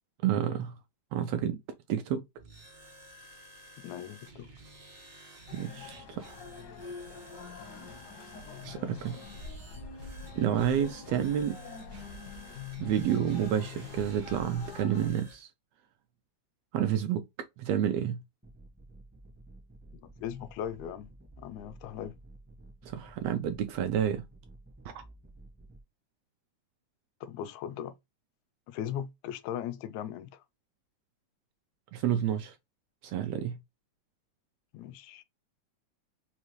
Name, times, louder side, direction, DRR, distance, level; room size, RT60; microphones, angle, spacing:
voice 1, 0.2-0.8 1.1-1.6 1.9-2.2 5.5-6.4 8.6-9.2 10.4-11.6 12.8-15.5 16.7-17.2 17.6-18.2 22.8-24.2 24.8-25.0 31.9-32.5 33.0-33.6, right 9 dB, 80° right, 1.5 m, -29 dB
sound 1, 2.4-15.4, right 1 dB, 60° right, 0.6 m, -53 dB
voice 2, 3.8-4.5 10.6-10.7 19.9-21.1 21.4-22.1 27.2-27.9 28.7-30.4 34.7-35.2, left 10 dB, 80° left, 1.8 m, -38 dB
sound 2, 5.5-15.1, left 5 dB, 60° left, 1.0 m, -45 dB
sound 3, 18.4-25.8, right 1 dB, 10° right, 0.5 m, -53 dB
5.3 x 2.3 x 3.0 m
omnidirectional pair, 3.3 m